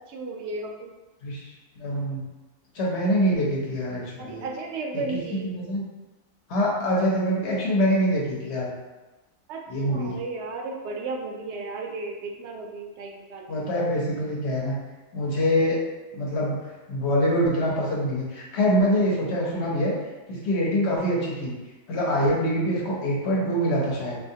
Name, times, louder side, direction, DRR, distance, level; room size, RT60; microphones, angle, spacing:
voice 1, 0.1-0.9 4.2-5.5 9.5-13.7, right 3 dB, 65° right, 1 dB, 0.7 m, -34 dB
voice 2, 1.8-2.2 2.7-4.4 4.9-5.0 5.4-5.8 6.5-8.7 9.7-10.2 13.5-14.8 15.1-15.8 16.1-16.6 16.9-19.9 20.3-21.6 21.9-24.2, equal, 60° left, -3 dB, 1.0 m, -24 dB
3.6 x 2.7 x 2.7 m, 1.2 s
omnidirectional pair, 1.4 m